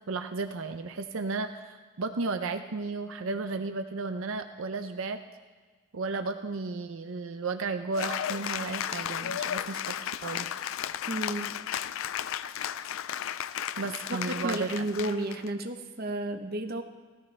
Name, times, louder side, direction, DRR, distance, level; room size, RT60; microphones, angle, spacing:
voice 1, 0.1-5.2 5.9-10.6 13.8-14.9, right 3 dB, 75° right, 8 dB, 0.6 m, -34 dB
Cheering / Applause, 7.9-15.5, left 10 dB, 70° left, 0.4 m, -34 dB
voice 2, 11.1-11.5 14.2-16.8, right 1 dB, 45° right, 6 dB, 0.8 m, -32 dB
16.0 x 14.0 x 3.3 m, 1.4 s
head